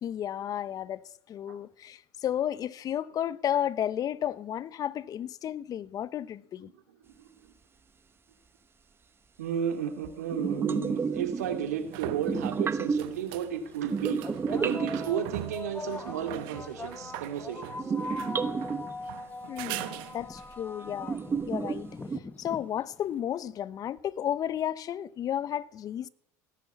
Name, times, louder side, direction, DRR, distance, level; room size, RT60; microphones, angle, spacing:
voice 1, 0.0-1.0 1.3-6.7 19.5-21.9 22.4-26.1, left 10 dB, 45° left, 0.9 m, -33 dB
voice 2, 7.0-7.5 9.4-14.2 14.5-17.7, right 8 dB, 90° right, 2.4 m, -33 dB
sound 1, 10.0-10.1 11.4-20.6 24.0-24.1, right 15 dB, 70° right, 1.1 m, -42 dB
sound 2, 10.3-11.9 12.1-13.3 13.8-15.5 17.8-19.0 20.4-20.5 20.9-22.2, right 5 dB, 25° right, 0.9 m, -31 dB
sound 3, 12.2-12.3 13.2-13.4 14.2-23.1, left 3 dB, 20° left, 1.3 m, -41 dB
17.0 x 10.5 x 8.1 m
hypercardioid pair, 80°, 8 cm